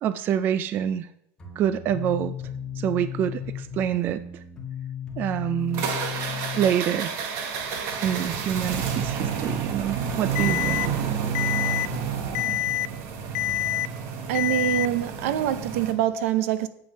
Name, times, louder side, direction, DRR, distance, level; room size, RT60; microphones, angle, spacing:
voice 1, 0.0-1.1 1.6-2.3 2.8-4.4 5.2-5.9 6.6-7.1 8.0-10.9, right 10 dB, 25° right, 0.3 m, -26 dB
sound 1, 1.4-6.7, left 8 dB, 10° left, 1.6 m, -35 dB
sound 2, 5.7-15.9, right 6 dB, 45° right, 1.3 m, -30 dB
Alarm, 10.4-10.9 11.4-11.9 12.4-12.9 13.4-13.9 14.4-14.9, left 16 dB, 75° left, 0.4 m, -26 dB
voice 2, 14.3-16.7, right 11 dB, 70° right, 0.8 m, -25 dB
9.1 x 7.8 x 5.4 m
supercardioid pair, 175°, 8 cm